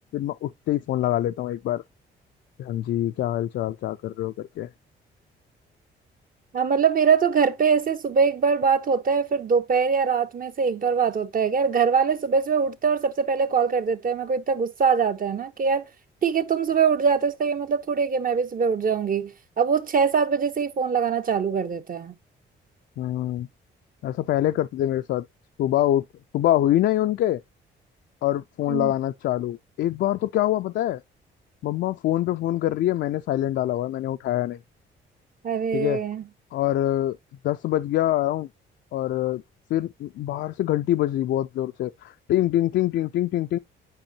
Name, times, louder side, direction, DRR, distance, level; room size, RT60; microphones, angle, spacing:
voice 1, 0.1-1.8 2.6-4.7 23.0-23.5 24.0-25.3 25.6-26.0 26.3-27.4 28.2-31.0 31.6-34.6 35.7-36.0 36.5-37.2 37.4-38.5 38.9-39.4 39.7-43.6, left 13 dB, 65° left, 0.4 m, -25 dB
voice 2, 6.5-15.9 16.2-22.1 28.7-28.9 35.4-36.2, right 6 dB, 45° right, 1.0 m, -23 dB
9.0 x 5.3 x 2.8 m
cardioid pair, 90°, 20 cm